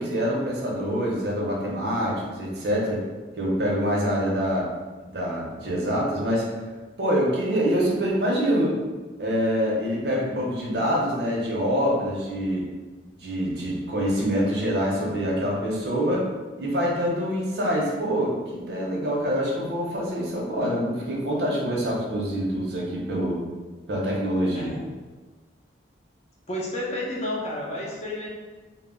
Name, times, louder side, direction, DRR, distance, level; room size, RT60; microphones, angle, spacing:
voice 1, 0.0-3.0 3.4-4.7 5.1-6.5 7.0-8.8 9.2-12.7 13.2-16.3 16.6-23.4 23.9-24.7, equal, 65° right, -3 dB, 0.6 m, -25 dB
voice 2, 26.5-28.3, left 1 dB, 40° left, -4 dB, 0.6 m, -31 dB
2.1 x 2.0 x 3.6 m, 1.3 s
head